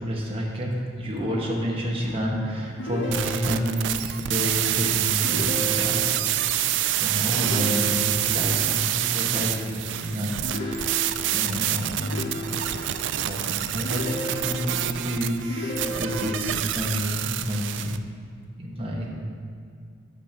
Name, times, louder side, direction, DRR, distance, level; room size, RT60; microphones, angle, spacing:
voice 1, 0.0-6.1 7.0-10.9 11.3-12.8 13.2-18.0 18.6-19.1, equal, 30° right, -3 dB, 1.1 m, -29 dB
sound 1, 2.8-3.8 5.2-6.3 7.4-8.4 10.4-11.4 12.0-13.0 13.8-14.9 15.5-16.5, left 1 dB, 65° left, 0.8 m, -33 dB
sound 2, 3.1-18.0, right 12 dB, 65° right, 0.3 m, -27 dB
6.7 x 6.1 x 5.9 m, 2.3 s
head